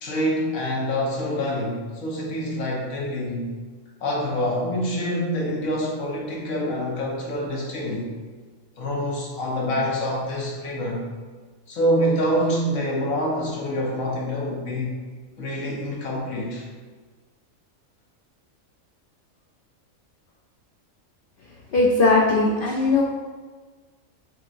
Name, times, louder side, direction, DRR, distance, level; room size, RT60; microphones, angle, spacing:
voice 1, 0.0-3.5 4.0-8.1 8.8-11.0 11.7-14.9 15.4-16.6, equal, 70° left, -2 dB, 1.4 m, -26 dB
voice 2, 21.7-23.0, left 3 dB, 85° left, -1 dB, 0.4 m, -19 dB
7.4 x 2.8 x 2.5 m, 1.4 s
omnidirectional pair, 1.5 m